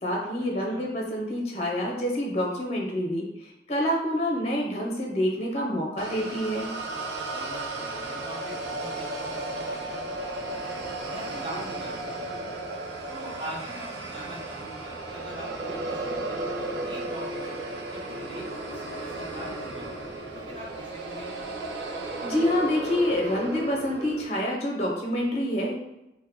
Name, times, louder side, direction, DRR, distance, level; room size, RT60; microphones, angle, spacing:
voice 1, 0.0-6.7 22.2-25.7, left 1 dB, 35° left, -1 dB, 0.5 m, -27 dB
sound 1, 6.0-24.2, right 2 dB, 85° right, 0.5 m, -34 dB
voice 2, 7.2-10.8 11.1-12.6 13.1-16.2 16.5-20.0 20.3-21.4, equal, 30° right, -5 dB, 0.8 m, -43 dB
2.8 x 2.1 x 3.5 m, 0.91 s
head